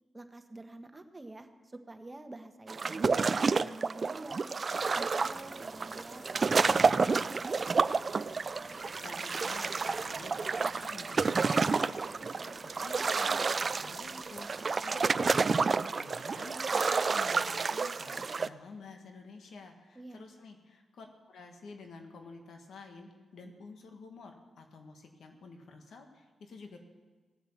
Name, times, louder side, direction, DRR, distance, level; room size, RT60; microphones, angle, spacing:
voice 1, 0.1-4.5 5.0-7.9 19.9-20.3, right 2 dB, 25° right, 7 dB, 1.3 m, -48 dB
sound 1, 2.7-18.5, right 4 dB, 50° right, 0.4 m, -30 dB
sound 2, 4.7-15.0, left 1 dB, 20° left, 1.4 m, -53 dB
voice 2, 9.0-14.5 14.8-26.8, left 4 dB, 75° left, 4 dB, 1.7 m, -50 dB
17.0 x 8.0 x 7.3 m, 1.3 s
cardioid pair, 60°, 0 cm